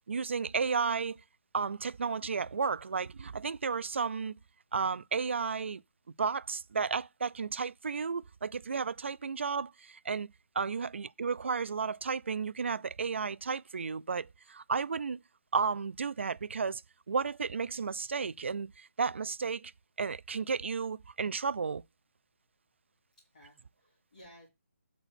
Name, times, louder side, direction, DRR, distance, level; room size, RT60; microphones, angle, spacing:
voice 1, 0.1-1.2 1.5-4.3 4.7-5.8 6.2-10.3 10.6-15.2 15.5-16.8 17.1-19.7 20.0-21.8, right 5 dB, 55° right, 0.4 m, -33 dB
voice 2, 23.3-24.5, equal, 30° left, 2.6 m, -57 dB
8.0 x 4.1 x 5.8 m
hypercardioid pair, 175°, 8 cm